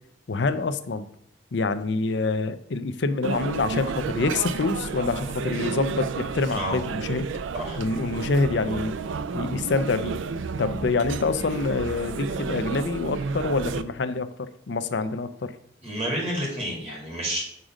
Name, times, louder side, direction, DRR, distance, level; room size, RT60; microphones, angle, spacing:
voice 1, 0.3-1.1 1.5-7.3 7.8-8.9 9.3-10.2 10.6-15.5, left 3 dB, 70° left, 11 dB, 0.5 m, -26 dB
sound 1, 3.2-13.8, right 5 dB, 85° right, 0.4 m, -31 dB
voice 2, 15.8-17.4, equal, 35° right, -2 dB, 2.4 m, -29 dB
6.7 x 3.7 x 6.1 m, 0.68 s
head